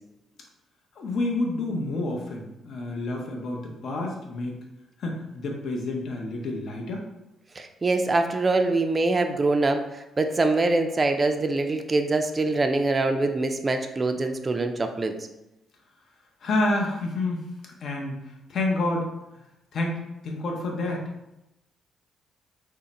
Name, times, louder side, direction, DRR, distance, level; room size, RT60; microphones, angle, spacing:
voice 1, 1.0-4.6 5.0-7.0 16.4-17.4 17.8-18.2 18.5-19.1 19.7-21.0, left 2 dB, 60° left, 0 dB, 0.7 m, -28 dB
voice 2, 7.6-15.1, right 2 dB, 30° right, 5 dB, 0.3 m, -24 dB
3.7 x 2.1 x 4.0 m, 0.92 s
cardioid pair, 90°, 0 cm